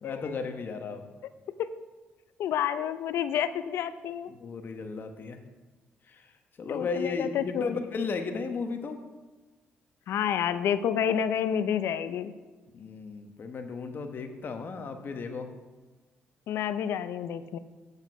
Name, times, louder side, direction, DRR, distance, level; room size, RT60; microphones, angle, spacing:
voice 1, 0.0-1.1 4.3-5.4 6.1-6.3 6.6-9.0 12.7-15.5, left 4 dB, 55° left, 6 dB, 1.2 m, -35 dB
voice 2, 2.4-4.3 6.7-7.8 10.1-12.3 16.5-17.6, left 9 dB, 80° left, 13 dB, 0.5 m, -29 dB
8.2 x 7.1 x 5.5 m, 1.3 s
cardioid pair, 85°, 4 cm